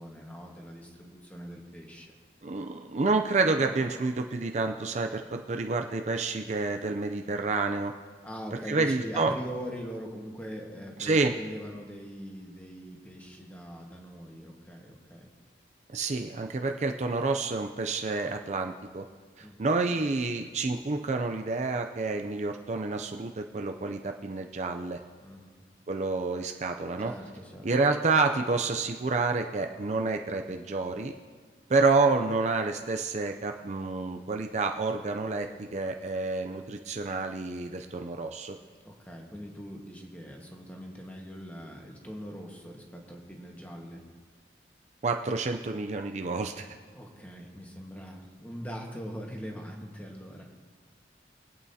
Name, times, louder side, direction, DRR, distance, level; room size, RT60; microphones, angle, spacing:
voice 1, 0.0-2.1 8.2-15.3 19.4-19.6 25.2-25.7 27.0-27.7 38.8-44.0 46.9-50.5, equal, 10° left, 0 dB, 1.4 m, -42 dB
voice 2, 2.4-7.9 8.7-9.3 11.0-11.3 15.9-19.1 19.4-25.0 25.9-27.1 27.6-31.1 31.7-38.6 45.0-46.7, right 3 dB, 40° right, 4 dB, 0.4 m, -29 dB
24.0 x 8.7 x 2.8 m, 1.5 s
head